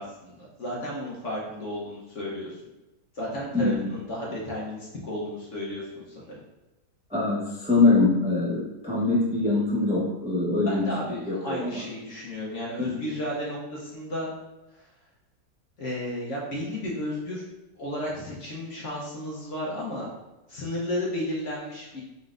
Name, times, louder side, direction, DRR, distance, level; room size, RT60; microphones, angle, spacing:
voice 1, 0.0-2.6 3.1-6.3 10.7-14.3 15.8-17.4 17.8-20.1 20.5-22.0, left 1 dB, 50° left, -4 dB, 1.0 m, -33 dB
voice 2, 3.5-3.8 7.1-10.9 11.2-11.8 12.9-13.1, left 3 dB, 10° right, -6 dB, 0.4 m, -23 dB
4.1 x 3.7 x 2.5 m, 1.0 s
omnidirectional pair, 2.0 m